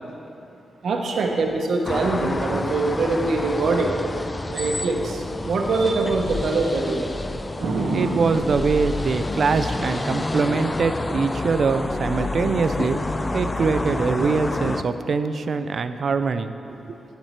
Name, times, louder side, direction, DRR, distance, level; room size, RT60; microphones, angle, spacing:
voice 1, 0.8-3.9 4.5-7.1 7.6-8.5, right 3 dB, 75° right, 2 dB, 0.9 m, -23 dB
sound 1, 1.8-14.8, left 2 dB, 20° left, 0.3 m, -29 dB
voice 2, 7.9-13.0 13.3-16.5 16.9-17.0, right 4 dB, 55° right, 10 dB, 0.4 m, -23 dB
9.0 x 8.1 x 4.4 m, 2.8 s
cardioid pair, 105°, 0 cm